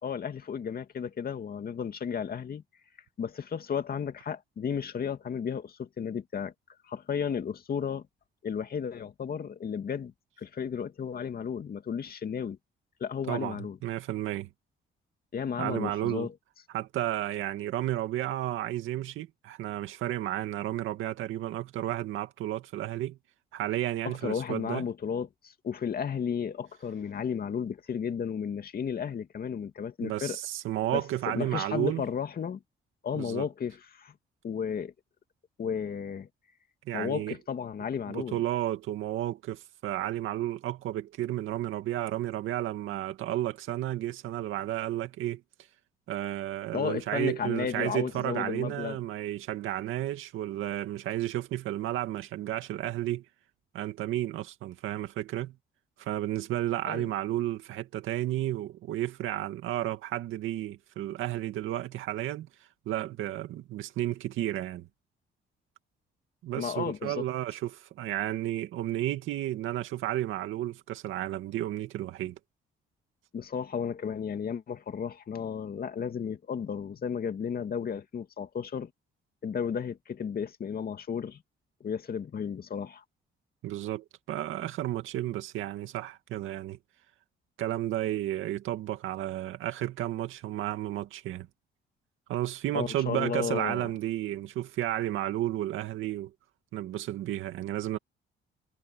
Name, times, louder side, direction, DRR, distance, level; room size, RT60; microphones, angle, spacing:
voice 1, 0.0-2.6 3.2-6.5 6.9-8.1 8.4-10.1 10.4-12.6 13.0-13.8 15.3-16.3 24.0-30.4 30.9-32.6 33.0-34.1 34.4-34.9 35.6-36.3 36.9-38.4 46.7-49.0 56.9-57.1 66.6-67.2 73.3-78.9 79.4-81.4 81.8-83.0 92.7-93.9, left 7 dB, 50° left, 2.3 m, -33 dB
voice 2, 13.3-14.5 15.6-16.3 16.7-23.2 23.5-24.8 30.0-32.0 33.2-33.5 36.9-37.4 38.0-45.4 46.1-53.2 53.7-55.6 56.0-62.5 62.9-64.9 66.4-72.4 83.6-86.8 87.6-91.5 92.3-96.3 96.7-98.0, right 13 dB, 85° right, 2.2 m, -32 dB
cardioid pair, 90°, 20 cm